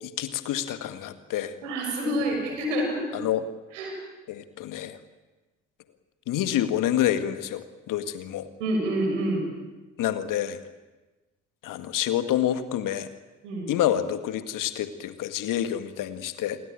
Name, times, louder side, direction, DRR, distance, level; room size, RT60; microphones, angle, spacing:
voice 1, 0.0-1.5 3.1-3.4 4.3-5.0 6.3-8.5 10.0-10.6 11.6-13.1 13.7-16.6, left 11 dB, 60° left, 11 dB, 1.9 m, -28 dB
voice 2, 1.6-3.0 3.7-3.9 8.6-9.4 13.4-13.7, right 1 dB, 75° right, 2 dB, 6.6 m, -27 dB
28.5 x 21.5 x 8.8 m, 1.2 s
figure-of-eight pair, 40°, 37 cm